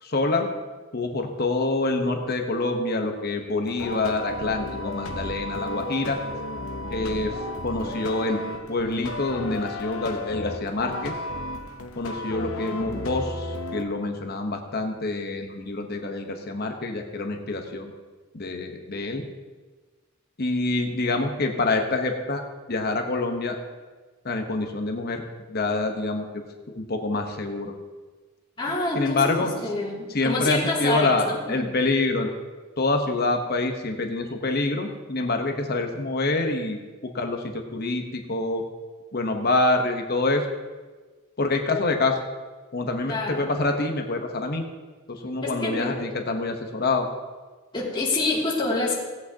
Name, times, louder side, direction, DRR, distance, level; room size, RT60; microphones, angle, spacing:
voice 1, 0.0-0.5 0.9-6.2 6.9-7.3 7.6-8.4 8.7-11.1 12.0-17.9 18.3-19.2 20.4-22.4 22.7-23.6 24.2-25.2 25.5-26.4 26.7-27.7 28.9-29.5 30.1-32.3 32.8-38.6 39.1-40.4 41.4-42.2 42.7-44.6 45.2-47.1, left 2 dB, 45° left, 4 dB, 1.0 m, -26 dB
sound 1, 3.6-13.8, left 1 dB, 75° left, 0.8 m, -34 dB
voice 2, 28.6-31.7 43.1-43.5 45.4-46.0 47.7-49.0, left 2 dB, 20° left, -5 dB, 2.5 m, -27 dB
17.5 x 8.3 x 2.9 m, 1.3 s
head